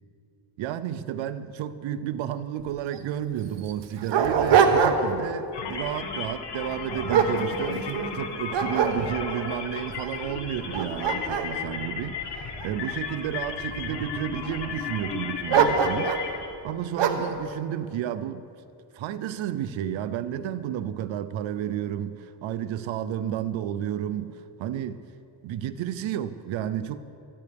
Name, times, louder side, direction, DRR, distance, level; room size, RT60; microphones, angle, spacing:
voice 1, 0.6-18.5 18.9-25.0 25.4-27.0, right 10 dB, 90° right, 0.7 m, -32 dB
Dog, 2.6-2.7 2.9-3.0 3.6-5.3 5.7-6.0 6.6-8.1 8.5-9.4 10.0-10.1 10.6-12.9 13.6-14.2 15.5-16.3 17.0-17.4, right 7 dB, 70° right, 1.2 m, -24 dB
sound 1, 5.5-16.5, left 6 dB, 65° left, 1.4 m, -35 dB
27.0 x 9.6 x 3.5 m
cardioid pair, 95°, 45 cm